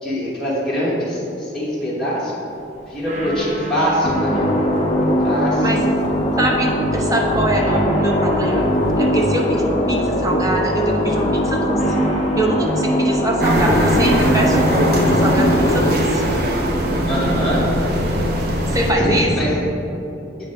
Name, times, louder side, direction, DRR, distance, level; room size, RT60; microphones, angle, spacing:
voice 1, 0.0-2.3 2.9-4.7 5.2-5.8 17.0-17.6 19.0-19.5, equal, 5° left, -9 dB, 1.0 m, -23 dB
sound 1, 2.5-18.2, right 2 dB, 40° right, 1.2 m, -34 dB
sound 2, 4.0-16.0, equal, 30° left, 0.5 m, -20 dB
voice 2, 6.4-8.7 9.0-11.9 12.4-16.2 18.7-19.6, right 1 dB, 20° right, 0 dB, 0.7 m, -23 dB
sound 3, 13.4-18.9, equal, 55° right, 0.8 m, -20 dB
8.1 x 3.1 x 5.3 m, 2.8 s
head